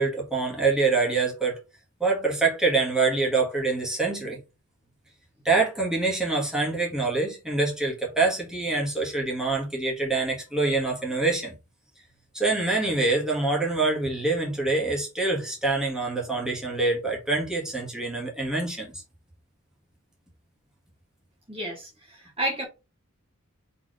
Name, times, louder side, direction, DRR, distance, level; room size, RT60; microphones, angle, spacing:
voice 1, 0.0-1.6 2.0-4.4 5.4-11.5 12.3-19.0, right 3 dB, 5° right, 1.6 m, -25 dB
voice 2, 21.5-22.7, right 1 dB, 25° right, 1.4 m, -31 dB
4.2 x 3.5 x 3.2 m
head